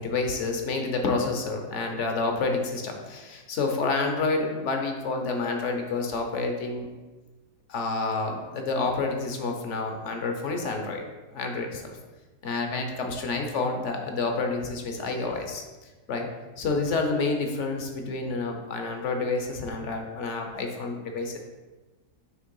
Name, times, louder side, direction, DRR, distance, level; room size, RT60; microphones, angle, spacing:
voice 1, 0.0-6.9 7.7-11.0 11.3-12.0 12.4-15.6 16.1-16.3 16.6-21.4, left 3 dB, 55° left, 3 dB, 0.9 m, -29 dB
6.2 x 3.4 x 5.4 m, 1.2 s
omnidirectional pair, 1.9 m